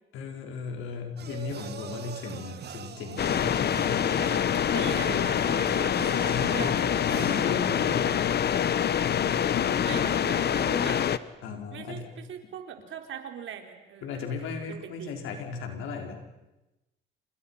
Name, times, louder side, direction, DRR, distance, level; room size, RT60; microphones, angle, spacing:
voice 1, 0.1-3.9 6.3-6.7 7.1-8.2 11.4-12.1 14.0-16.2, left 5 dB, 90° left, 3 dB, 4.8 m, -36 dB
sound 1, 1.2-7.4, right 8 dB, 55° right, 1.6 m, -42 dB
sound 2, 3.2-11.2, left 9 dB, 55° left, 1.1 m, -25 dB
voice 2, 4.0-4.5 4.7-6.8 9.8-11.0 11.7-14.3 14.7-15.1, right 8 dB, 75° right, 5 dB, 3.9 m, -40 dB
29.0 x 28.5 x 5.8 m, 0.99 s
cardioid pair, 90°, 20 cm